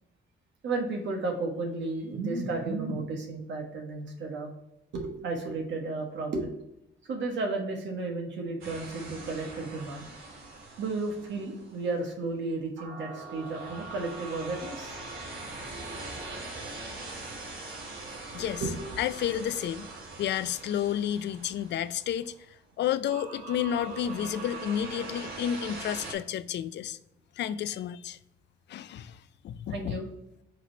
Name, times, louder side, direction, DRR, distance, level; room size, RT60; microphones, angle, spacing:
voice 1, 0.6-4.5 4.9-6.6 7.1-10.0 10.8-15.0 18.6-18.7 29.7-30.1, right 3 dB, 65° right, 1.3 m, -33 dB
sound 1, 8.6-12.0 12.8-22.4 23.0-26.1, right 3 dB, 80° right, 2.3 m, -42 dB
voice 2, 19.0-19.9 20.2-22.3 22.8-27.0 27.4-28.2 28.7-29.2 29.4-30.0, left 10 dB, 60° left, 0.4 m, -31 dB
6.0 x 3.1 x 5.5 m
cardioid pair, 90°, 20 cm